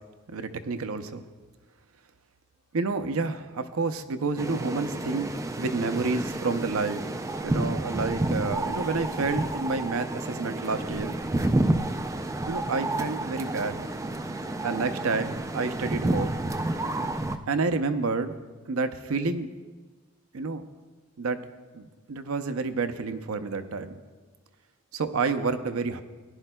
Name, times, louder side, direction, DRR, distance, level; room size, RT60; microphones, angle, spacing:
voice 1, 0.3-1.2 2.7-7.1 7.4-11.2 12.4-13.8 14.6-16.4 17.5-18.3 18.7-19.5 20.3-20.6 21.2-21.4 21.7-24.0 24.9-26.0, right 4 dB, 80° right, 10 dB, 0.6 m, -29 dB
sound 1, 4.4-17.4, right 2 dB, 15° right, 0.3 m, -30 dB
17.5 x 11.0 x 2.2 m, 1.4 s
head